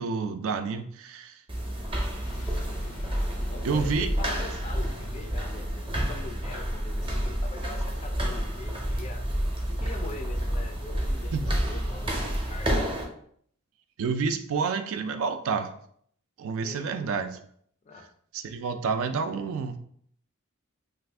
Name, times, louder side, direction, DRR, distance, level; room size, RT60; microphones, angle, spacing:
voice 1, 0.0-1.4 3.6-4.1 11.3-11.4 14.0-15.8 16.4-17.4 18.3-19.8, right 5 dB, 65° right, 8 dB, 0.3 m, -29 dB
sound 1, 1.5-13.0, equal, 25° right, 0.6 m, -29 dB
Boom, 2.3-7.1, left 2 dB, 90° left, 0.5 m, -47 dB
voice 2, 3.5-9.3 9.7-12.9 16.6-17.2 17.9-18.1, left 3 dB, 30° left, 4 dB, 0.3 m, -43 dB
2.5 x 2.4 x 3.3 m, 0.64 s
head